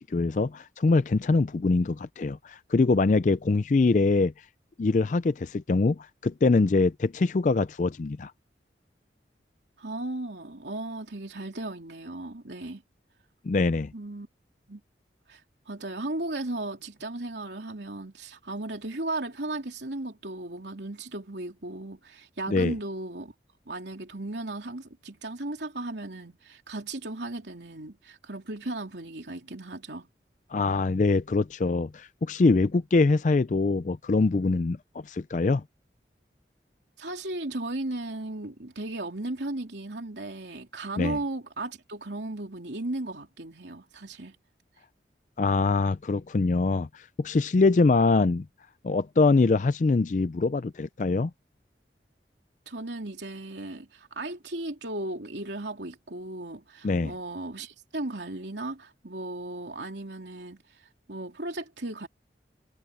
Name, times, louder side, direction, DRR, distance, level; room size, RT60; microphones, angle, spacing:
voice 1, 0.0-4.3 4.8-8.3 13.4-13.9 22.5-22.7 30.5-35.6 41.0-41.2 45.4-48.5 48.8-51.3 56.8-57.1, left 3 dB, 45° left, 0.4 m, -24 dB
voice 2, 9.8-12.8 13.9-14.3 14.7-14.8 15.3-23.3 23.7-30.1 37.0-44.4 52.6-62.1, right 2 dB, 85° right, 3.2 m, -36 dB
head